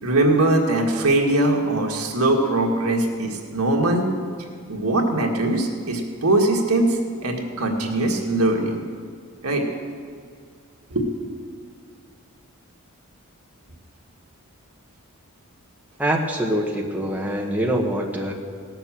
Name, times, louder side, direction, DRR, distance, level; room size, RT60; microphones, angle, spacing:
voice 1, 0.0-4.1 4.7-8.8 9.4-9.7 10.9-11.1, right 2 dB, 85° right, 1 dB, 1.8 m, -21 dB
voice 2, 16.0-18.3, right 1 dB, 5° right, 0 dB, 1.0 m, -24 dB
18.0 x 6.8 x 7.4 m, 2.1 s
head